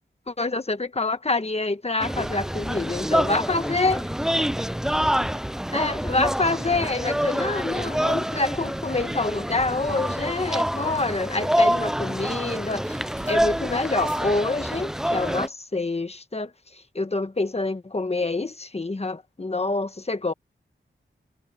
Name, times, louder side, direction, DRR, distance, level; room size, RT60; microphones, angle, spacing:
voice 1, 0.3-4.0 5.7-13.0 13.2-16.5 16.9-20.3, left 3 dB, 30° left, 1.3 m, -26 dB
sound 1, 2.0-15.5, equal, 5° right, 0.4 m, -26 dB
voice 2, 3.2-6.0, left 1 dB, 15° left, 5.9 m, -48 dB
sound 2, 7.8-15.5, right 3 dB, 45° right, 3.9 m, -50 dB
wide cardioid pair, 95°, 20 cm